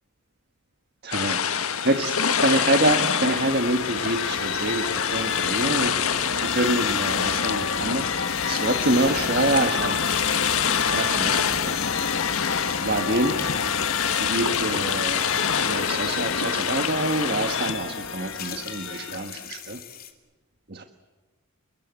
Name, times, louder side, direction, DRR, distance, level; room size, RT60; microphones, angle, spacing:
voice 1, 1.0-2.1 2.4-5.9 6.4-8.1 8.4-10.0 10.8-11.7 12.8-13.4 14.1-15.2 15.6-19.8 20.7-20.8, right 2 dB, 45° right, 6 dB, 1.5 m, -26 dB
sound 1, 1.1-17.7, left 7 dB, 80° left, 1.6 m, -26 dB
sound 2, 1.3-19.5, left 5 dB, 60° left, 1.4 m, -30 dB
sound 3, 8.2-20.1, left 9 dB, 40° left, 3.3 m, -40 dB
29.5 x 22.0 x 8.3 m, 1.2 s
head